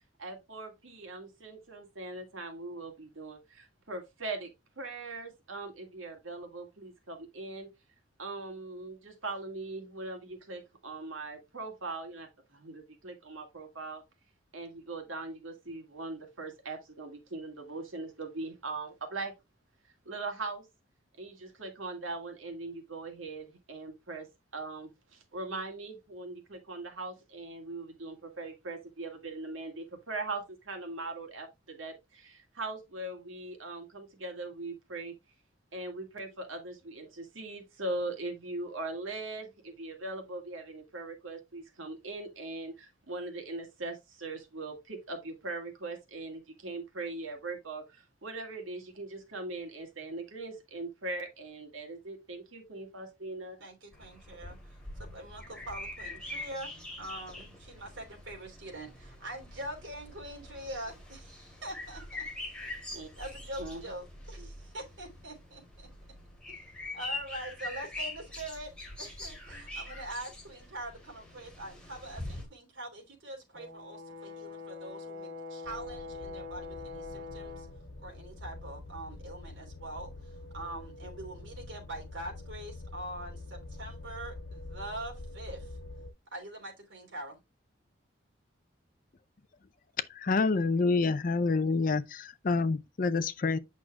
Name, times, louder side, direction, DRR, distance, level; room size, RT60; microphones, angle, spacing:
voice 1, 0.2-7.7 8.2-14.0 14.5-19.3 20.1-20.7 21.2-24.3 24.5-35.2 35.7-53.6 62.9-63.1 63.6-63.8 64.4-64.5, right 2 dB, 90° right, 2.1 m, -40 dB
voice 2, 53.6-54.6 55.0-56.7 57.0-62.2 62.6-62.8 63.2-65.9 66.5-66.6 66.9-68.7 69.0-77.7 78.0-85.8 86.3-87.4, right 1 dB, 70° right, 3.0 m, -43 dB
sound 1, 53.9-72.5, left 2 dB, 5° left, 2.7 m, -44 dB
Brass instrument, 73.5-77.8, left 3 dB, 45° right, 3.1 m, -43 dB
sound 2, 75.6-86.1, left 2 dB, 85° left, 1.0 m, -46 dB
voice 3, 90.1-93.6, left 3 dB, 45° left, 0.5 m, -27 dB
8.4 x 6.2 x 2.2 m
head